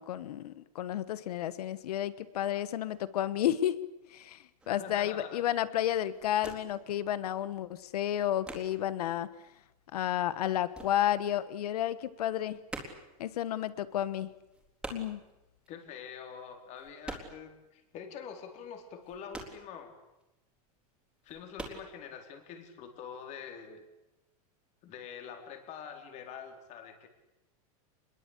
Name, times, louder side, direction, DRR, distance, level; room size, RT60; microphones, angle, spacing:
voice 1, 0.0-3.8 4.1-9.3 9.9-12.6 13.2-14.3 14.9-15.2, left 11 dB, 90° left, 16 dB, 1.3 m, -31 dB
sound 1, 4.6-4.9 5.4-5.7 5.9-6.9 7.2-9.0 9.4-11.6 11.9-17.6 17.9-18.0 18.4-20.3 20.7-20.8 21.2-21.8, right 2 dB, 5° right, 3.9 m, -46 dB
voice 2, 4.7-5.4 15.7-19.9 21.2-23.8 24.8-27.1, left 7 dB, 40° left, 6 dB, 4.2 m, -45 dB
26.0 x 22.0 x 8.4 m, 0.96 s
supercardioid pair, 150°, 19 cm